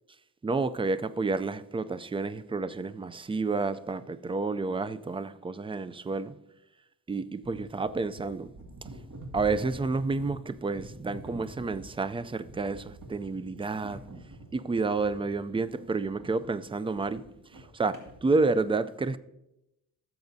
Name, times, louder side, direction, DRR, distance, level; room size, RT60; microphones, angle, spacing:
voice 1, 0.4-6.4 7.1-8.5 9.3-14.0 14.5-17.2 17.5-19.2, right 3 dB, 15° right, 0.3 m, -30 dB
sound 1, 7.4-18.6, right 1 dB, 65° right, 2.1 m, -47 dB
15.0 x 7.2 x 2.7 m
wide cardioid pair, 105°, 35 cm